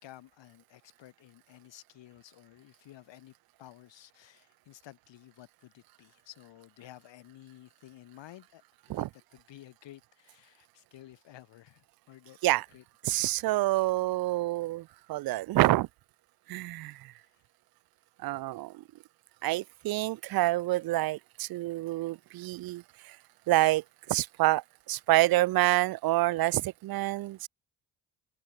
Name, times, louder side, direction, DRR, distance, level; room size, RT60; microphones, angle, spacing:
voice 1, 0.0-3.3 3.6-8.6 8.9-12.4 12.7-12.8, left 14 dB, 75° left, 4.6 m, -53 dB
voice 2, 13.0-15.9 16.5-17.0 18.2-18.7 19.4-23.2 23.5-27.5, right 17 dB, 55° right, 0.5 m, -27 dB
supercardioid pair, 60°, 44 cm